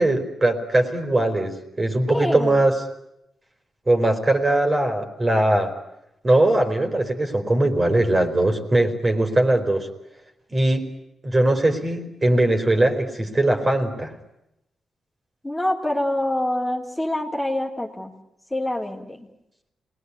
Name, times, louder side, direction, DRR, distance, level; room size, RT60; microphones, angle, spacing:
voice 1, 0.0-2.7 3.9-5.7 6.2-9.9 10.5-10.8 11.2-14.2, right 1 dB, 30° right, 5 dB, 4.2 m, -20 dB
voice 2, 2.1-2.6 15.4-18.1 18.5-19.3, left 1 dB, 10° left, -1 dB, 3.1 m, -25 dB
27.0 x 20.5 x 9.8 m, 0.85 s
cardioid pair, 85°, 0 cm